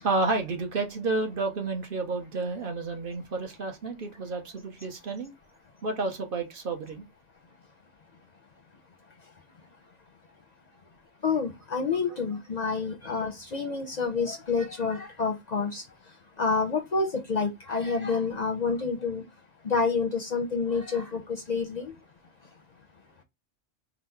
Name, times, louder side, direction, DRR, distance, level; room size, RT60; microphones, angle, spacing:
voice 1, 0.0-5.3 5.8-7.1, right 3 dB, 50° right, 1.0 m, -30 dB
voice 2, 11.2-15.9 16.4-19.2 19.6-21.9, left 4 dB, 50° left, 0.6 m, -28 dB
4.0 x 2.0 x 4.3 m
omnidirectional pair, 1.2 m